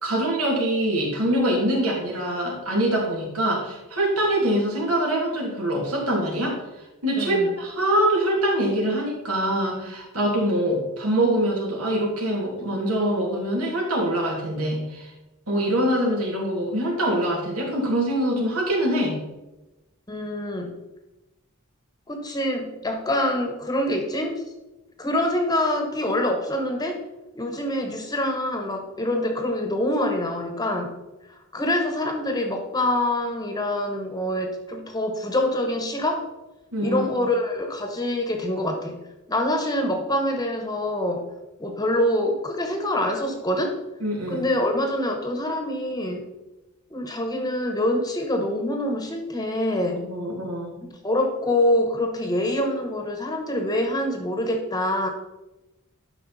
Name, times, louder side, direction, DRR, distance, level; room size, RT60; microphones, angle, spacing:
voice 1, 0.0-6.5 7.0-15.1 15.5-19.2 36.7-37.0 44.0-44.5 50.0-50.8, right 1 dB, 85° right, -2 dB, 2.8 m, -24 dB
voice 2, 7.2-7.5 20.1-20.7 22.1-24.4 25.0-27.0 27.4-30.9 31.5-36.2 36.8-39.0 39.3-41.2 41.6-43.8 44.3-46.3 46.9-50.1 51.0-55.1, left 1 dB, 20° left, 4 dB, 1.1 m, -25 dB
11.5 x 5.3 x 4.1 m, 1.0 s
head